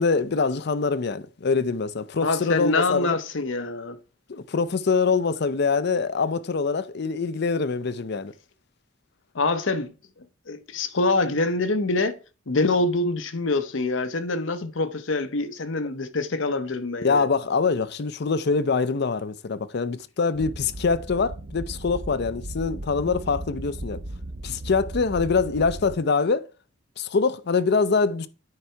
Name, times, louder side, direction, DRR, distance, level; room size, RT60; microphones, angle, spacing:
voice 1, 0.0-3.2 4.3-8.3 17.0-24.0 24.4-26.5 27.0-28.3, left 4 dB, 60° left, 0.5 m, -24 dB
voice 2, 2.2-4.0 9.3-9.9 10.5-12.2 12.5-17.3, left 3 dB, 80° left, 0.9 m, -25 dB
sound 1, 20.3-26.0, right 1 dB, 45° right, 0.7 m, -36 dB
9.7 x 4.8 x 4.5 m
head